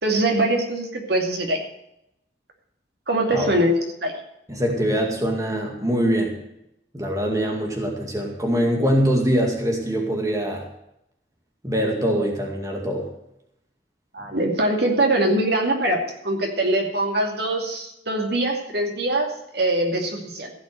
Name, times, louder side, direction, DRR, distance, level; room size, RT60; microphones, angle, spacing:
voice 1, 0.0-1.6 3.1-3.7 4.0-4.2 14.1-19.3 19.5-20.5, right 1 dB, 60° right, 2 dB, 2.5 m, -22 dB
voice 2, 4.5-6.3 6.9-10.6 11.6-13.1, equal, 20° right, 1 dB, 2.1 m, -23 dB
15.5 x 6.2 x 7.7 m, 0.80 s
head